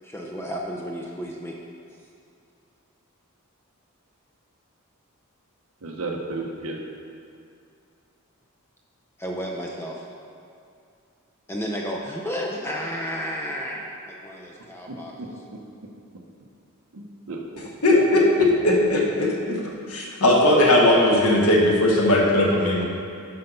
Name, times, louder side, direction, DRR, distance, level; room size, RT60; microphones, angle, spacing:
voice 1, 0.0-1.6 9.2-10.0 11.5-15.4, equal, 10° left, -1 dB, 0.5 m, -32 dB
voice 2, 5.8-6.8 16.9-18.0, right 3 dB, 70° right, 1 dB, 0.8 m, -33 dB
voice 3, 17.8-19.6 19.9-22.8, left 1 dB, 85° left, -2 dB, 1.5 m, -18 dB
7.6 x 5.7 x 5.4 m, 2.4 s
head